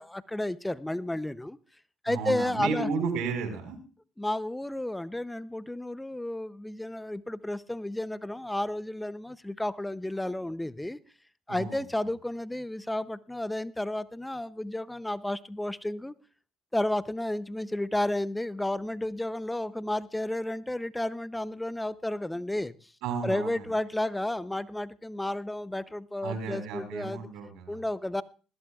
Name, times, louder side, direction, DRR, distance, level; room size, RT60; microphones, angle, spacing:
voice 1, 0.0-1.6 2.0-2.9 4.2-11.0 11.5-16.1 16.7-22.9 23.2-27.2 27.7-28.2, left 1 dB, 10° left, 15 dB, 0.6 m, -32 dB
voice 2, 2.1-3.8 11.5-11.8 23.0-23.7 26.2-27.8, right 5 dB, 80° right, 6 dB, 4.5 m, -33 dB
20.5 x 14.5 x 2.4 m, 0.35 s
supercardioid pair, 75°, 0 cm